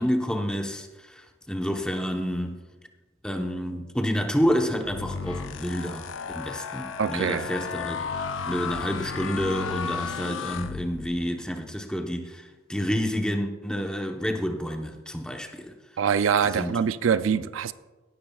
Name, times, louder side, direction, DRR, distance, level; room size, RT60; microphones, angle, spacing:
voice 1, 0.0-2.6 3.2-8.0 8.5-15.7 16.4-16.8 17.3-17.4, equal, 5° left, 0.9 m, -29 dB
sound 1, 4.8-11.3, left 6 dB, 75° left, 0.6 m, -34 dB
voice 2, 7.0-7.5 16.0-17.7, right 7 dB, 85° right, 0.4 m, -24 dB
17.5 x 12.5 x 2.4 m
head